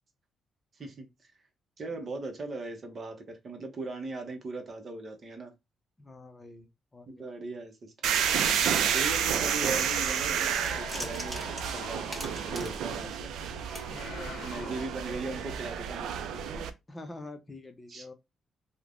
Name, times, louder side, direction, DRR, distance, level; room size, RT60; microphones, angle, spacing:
voice 1, 1.8-5.5 7.1-8.2 8.9-11.4 11.7-12.2 12.5-13.3 14.4-16.3 17.9-18.1, right 2 dB, 45° right, 0.8 m, -39 dB
voice 2, 6.0-7.3 13.9-14.9 16.9-18.1, left 2 dB, 20° left, 0.6 m, -46 dB
sound 1, 8.0-16.7, right 8 dB, 85° right, 0.4 m, -30 dB
sound 2, 10.1-13.5 13.7-13.8, equal, 20° right, 1.4 m, -42 dB
sound 3, 10.5-12.9 13.6-15.2, left 7 dB, 75° left, 0.7 m, -46 dB
3.1 x 2.1 x 2.5 m
cardioid pair, 85°, 0 cm